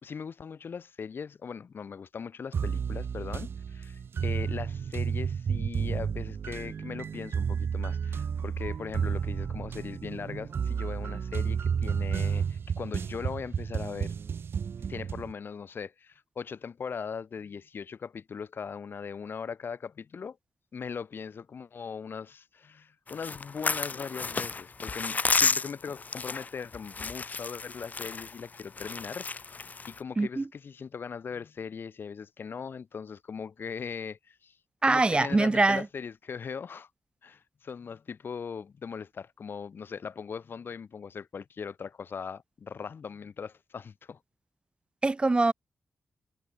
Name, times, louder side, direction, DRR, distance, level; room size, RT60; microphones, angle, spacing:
voice 1, 0.0-14.1 14.8-20.4 20.7-29.5 29.9-34.6 34.8-36.9 37.2-44.2, left 6 dB, 60° left, 3.3 m, -39 dB
sound 1, 2.5-15.3, right 7 dB, 65° right, 1.6 m, -32 dB
sound 2, 23.1-30.0, left 4 dB, 40° left, 3.1 m, -31 dB
voice 2, 34.8-35.9 45.0-45.5, right 3 dB, 25° right, 1.1 m, -23 dB
wide cardioid pair, 105°, 4 cm